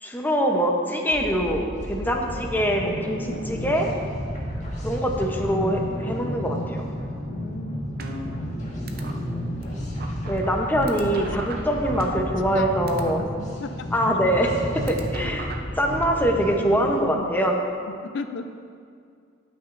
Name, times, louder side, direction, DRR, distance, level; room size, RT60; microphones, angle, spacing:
voice 1, 0.0-3.9 4.8-6.9 10.3-13.2 13.9-14.6 14.9-15.5 15.8-17.6, equal, 10° left, 1 dB, 0.7 m, -24 dB
sound 1, 1.1-17.1, equal, 40° left, 1.5 m, -32 dB
voice 2, 7.3-7.9 11.2-11.3 12.4-13.3 13.6-13.9 16.6-17.3 18.0-18.5, left 4 dB, 65° left, 8 dB, 0.4 m, -36 dB
sound 2, 8.0-8.6 8.9-9.1 9.6-9.7 10.0-12.6 12.9-13.1 14.0-16.0, right 2 dB, 55° right, 0.6 m, -34 dB
16.5 x 6.0 x 2.5 m, 2.3 s
head